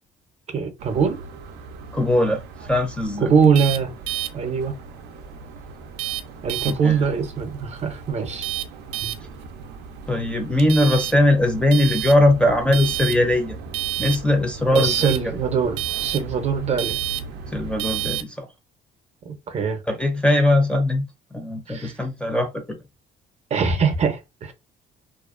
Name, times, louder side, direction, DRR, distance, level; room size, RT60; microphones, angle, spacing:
voice 1, 0.5-1.2 3.2-3.9 4.3-4.7 6.4-8.5 9.0-9.2 14.7-17.0 19.2-19.8 21.7-21.9 23.5-24.5, right 6 dB, 40° right, 0.6 m, -22 dB
sound 1, 0.8-18.2, right 10 dB, 85° right, 0.4 m, -32 dB
voice 2, 1.9-2.4 2.7-3.3 6.7-7.0 10.1-13.6 14.0-15.1 17.5-18.5 19.9-21.0 21.3-22.6, left 1 dB, 5° left, 0.5 m, -20 dB
2.4 x 2.1 x 2.4 m
cardioid pair, 110°, 17 cm